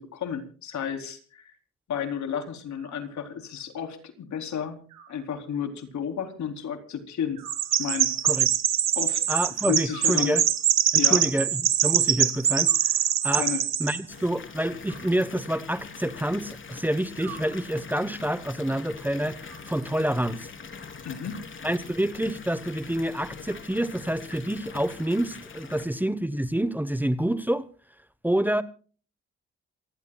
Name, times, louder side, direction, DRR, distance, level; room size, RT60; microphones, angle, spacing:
voice 1, 0.0-1.5 1.9-4.8 5.1-7.4 7.8-8.1 9.0-9.2 9.7-10.4 10.9-11.3 13.3-13.6 21.0-21.4, left 8 dB, 70° left, 6 dB, 4.1 m, -32 dB
Animal, 2.7-3.6 4.9-5.9 7.4-8.4 9.9-10.9 12.6-13.5 14.8-15.9 17.2-18.1 19.4-20.3, right 9 dB, 90° right, 6.6 m, -50 dB
Chirp tweet, 7.5-14.0, right 9 dB, 60° right, 2.3 m, -23 dB
voice 2, 9.3-10.4 10.9-12.9 13.2-13.5 13.8-20.5 21.6-27.7 28.2-28.6, right 1 dB, 5° right, 14 dB, 1.2 m, -27 dB
Water tap faucet / Bathtub (filling or washing) / Fill (with liquid), 14.1-25.9, left 5 dB, 40° left, 3.6 m, -43 dB
28.0 x 16.0 x 2.4 m, 0.39 s
cardioid pair, 90°, 30 cm